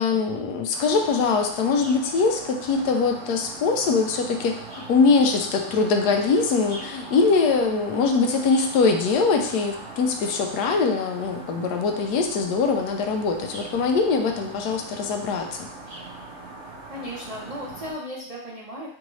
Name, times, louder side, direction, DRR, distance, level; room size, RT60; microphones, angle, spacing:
voice 1, 0.0-15.7, left 4 dB, 90° left, 4 dB, 1.2 m, -22 dB
sound 1, 0.7-17.9, right 2 dB, 65° right, 1.6 m, -41 dB
voice 2, 16.9-18.9, equal, 40° right, -6 dB, 0.5 m, -36 dB
4.6 x 2.6 x 3.0 m, 0.63 s
omnidirectional pair, 1.7 m